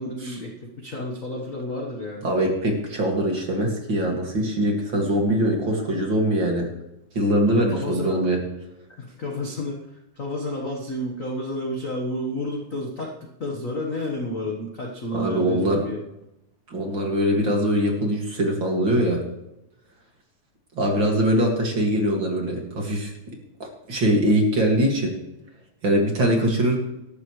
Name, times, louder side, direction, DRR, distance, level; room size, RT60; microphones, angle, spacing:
voice 1, 0.0-2.3 7.5-8.2 9.0-13.1 13.4-16.0, left 1 dB, 45° left, 0 dB, 1.1 m, -31 dB
voice 2, 2.2-6.7 7.1-8.4 15.1-15.8 16.7-19.2 20.8-23.1 23.9-25.1 25.8-26.8, right 1 dB, 40° right, 0 dB, 2.7 m, -22 dB
18.0 x 13.5 x 3.3 m, 0.88 s
omnidirectional pair, 3.6 m